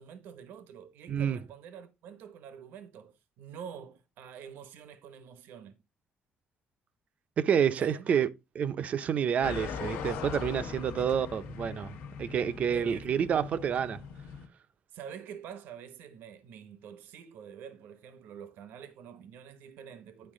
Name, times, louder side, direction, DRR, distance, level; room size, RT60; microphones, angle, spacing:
voice 1, 0.0-5.8 7.8-8.1 11.0-11.1 12.7-13.2 14.9-20.3, right 8 dB, 80° right, 0.9 m, -47 dB
voice 2, 1.1-1.4 7.4-8.3 8.6-14.0, right 8 dB, 45° right, 0.5 m, -29 dB
sound 1, 9.4-14.5, left 6 dB, 85° left, 1.1 m, -40 dB
9.6 x 4.7 x 3.7 m
cardioid pair, 145°, 3 cm